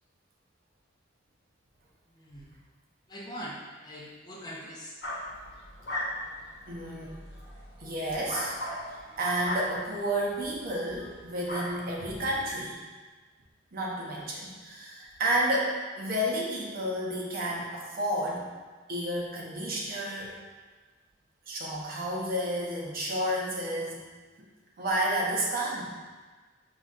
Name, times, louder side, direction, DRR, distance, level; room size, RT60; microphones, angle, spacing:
voice 1, 2.1-2.6 3.1-5.0, equal, 20° left, -4 dB, 0.6 m, -42 dB
sound 1, 5.0-10.5 10.9-11.2 11.4-11.9, left 1 dB, 65° left, 1.2 m, -38 dB
voice 2, 6.7-7.2 7.8-8.6 8.9-12.8 13.7-18.5 18.9-20.4 21.5-24.1 24.4-24.5 24.8-25.9, right 1 dB, 50° right, -3 dB, 0.7 m, -31 dB
5.5 x 3.1 x 2.4 m, 1.4 s
head